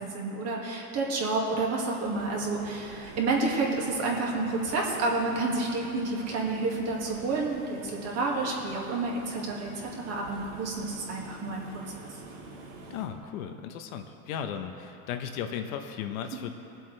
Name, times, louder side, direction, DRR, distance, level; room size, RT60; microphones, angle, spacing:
voice 1, 0.0-11.6, right 3 dB, 35° right, -2 dB, 2.1 m, -30 dB
sound 1, 2.0-13.1, right 3 dB, 60° right, 1.9 m, -47 dB
voice 2, 12.9-16.5, left 8 dB, 65° left, 6 dB, 1.0 m, -36 dB
22.0 x 7.8 x 3.3 m, 2.9 s
supercardioid pair, 140°, 43 cm